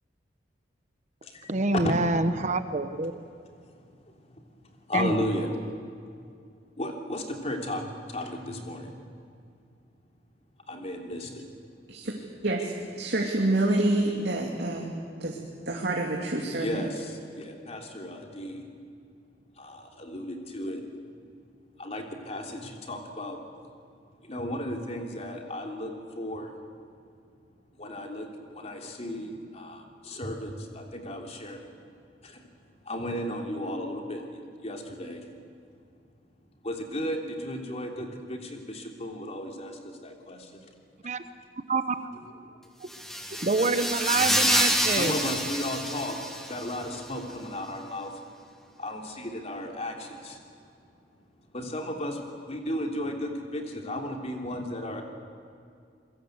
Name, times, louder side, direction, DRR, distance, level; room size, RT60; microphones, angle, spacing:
voice 1, 1.5-3.1 4.9-5.1 41.0-41.2 41.7-41.9 43.4-45.2, right 3 dB, 40° right, 10 dB, 1.0 m, -26 dB
voice 2, 4.9-5.5 6.8-8.9 10.7-11.4 16.6-18.6 19.6-20.8 21.8-23.4 24.2-26.5 27.8-28.3 28.5-31.7 32.2-32.4 32.8-35.2 36.6-40.6 44.9-46.2 46.5-48.2 48.8-50.4 51.5-55.0, left 1 dB, 35° left, 2 dB, 3.3 m, -34 dB
voice 3, 12.4-14.9 15.2-15.4 15.7-16.8, right 2 dB, 65° right, -1 dB, 2.8 m, -27 dB
sound 1, 42.9-46.8, equal, ahead, 2.5 m, -27 dB
27.5 x 22.0 x 8.0 m, 2.3 s
head